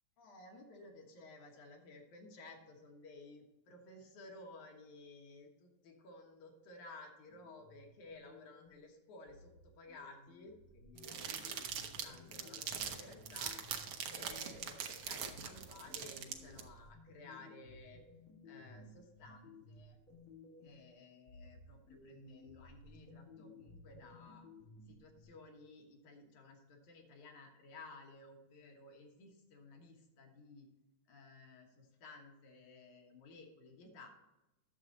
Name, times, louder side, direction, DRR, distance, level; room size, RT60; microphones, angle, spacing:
voice 1, 0.2-13.6 14.1-18.0 18.5-20.0 20.6-24.5 24.9-30.7 31.1-34.1, left 2 dB, 70° left, 1 dB, 2.7 m, -56 dB
sound 1, 7.3-8.9 9.3-14.9 15.3-20.9 21.3-25.2, left 2 dB, 25° left, 3.0 m, -58 dB
open paper Twix, 11.0-16.6, right 7 dB, 80° right, 1.2 m, -42 dB
10.5 x 7.2 x 3.9 m, 0.99 s
omnidirectional pair, 3.6 m